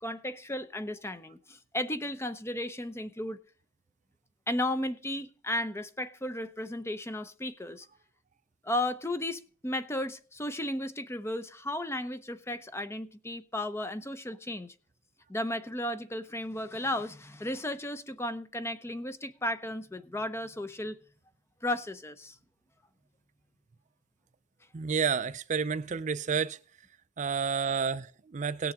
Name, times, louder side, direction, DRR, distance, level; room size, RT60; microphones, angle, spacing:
voice 1, 0.0-3.4 4.5-7.9 8.6-14.7 15.3-21.0 21.6-22.4, left 1 dB, 15° left, 0.7 m, -34 dB
voice 2, 24.7-26.6 27.2-28.7, right 6 dB, 40° right, 0.5 m, -30 dB
18.0 x 7.0 x 3.7 m
head